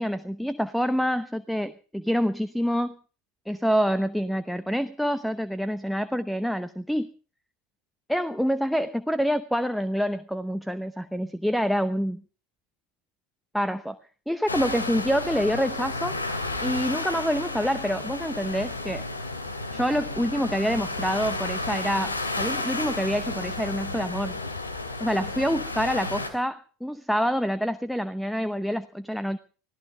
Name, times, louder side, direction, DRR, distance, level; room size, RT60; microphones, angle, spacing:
voice 1, 0.0-3.0 3.5-7.1 8.1-12.2 13.5-14.0 14.3-16.2 16.6-19.1 19.7-24.4 25.0-29.4, equal, ahead, 15 dB, 0.8 m, -27 dB
sound 1, 14.5-26.3, left 2 dB, 85° left, 2.6 m, -32 dB
25.0 x 16.0 x 3.4 m, 0.38 s
figure-of-eight pair, 75°, 0 cm